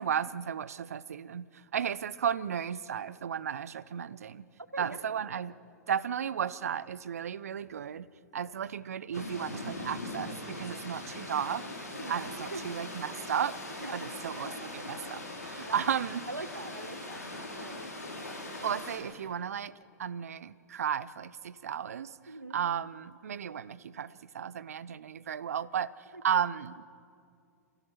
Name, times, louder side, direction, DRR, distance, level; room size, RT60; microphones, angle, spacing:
voice 1, 0.0-4.4 4.8-5.5 5.9-8.1 8.3-11.8 12.1-13.6 13.9-16.2 18.6-19.7 20.0-22.2 22.5-25.9 26.2-26.8, right 8 dB, 65° right, 18 dB, 0.7 m, -34 dB
voice 2, 4.7-5.4 8.4-8.6 11.9-12.7 13.8-14.1 15.6-15.8 16.3-18.8 22.3-22.7 26.1-26.2, right 2 dB, 85° right, 12 dB, 1.1 m, -44 dB
sound 1, 9.1-19.0, left 2 dB, 75° left, 4.7 m, -41 dB
26.5 x 16.0 x 7.2 m, 2.3 s
figure-of-eight pair, 100°, 9 cm